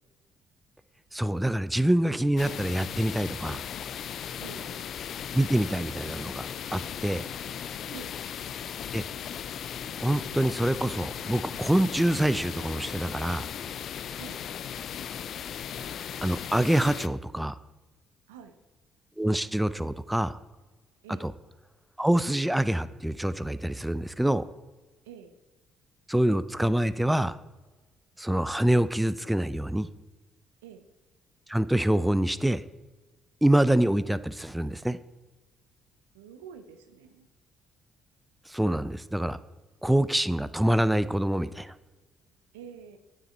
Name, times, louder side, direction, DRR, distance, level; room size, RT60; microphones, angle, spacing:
voice 1, 1.1-3.6 5.3-7.2 8.9-9.0 10.0-13.5 16.2-17.6 19.2-20.4 21.2-21.3 22.0-24.4 26.1-27.4 28.2-29.9 31.5-32.6 33.4-35.0 38.5-39.4 39.8-41.7, right 1 dB, 5° right, 14 dB, 0.5 m, -26 dB
sound 1, 2.4-17.1, left 8 dB, 60° left, 0.4 m, -37 dB
voice 2, 4.4-4.9 7.9-8.2 14.2-14.4 18.3-18.6 21.0-21.3 25.0-25.3 30.6-30.8 36.1-37.3 42.5-43.0, right 8 dB, 90° right, 8 dB, 0.7 m, -47 dB
9.2 x 8.8 x 4.4 m, 1.2 s
hypercardioid pair, 55°, 0 cm